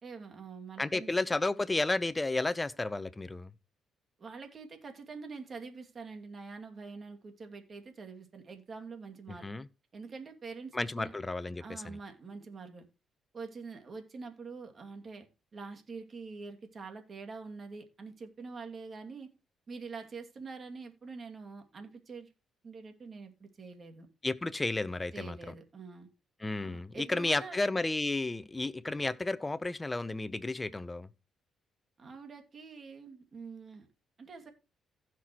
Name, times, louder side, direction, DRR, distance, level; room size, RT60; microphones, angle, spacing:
voice 1, 0.0-1.1 4.2-9.5 9.9-11.1 11.6-12.9 13.3-15.3 15.5-19.3 19.7-22.3 22.6-24.1 25.1-26.1 26.6-27.6 32.0-33.9 34.2-34.5, right 4 dB, 40° right, 2.4 m, -45 dB
voice 2, 0.8-3.5 9.4-9.7 10.7-12.0 24.2-25.5 26.4-31.1, left 2 dB, 20° left, 0.8 m, -32 dB
16.0 x 6.0 x 3.0 m
cardioid pair, 90°, 0 cm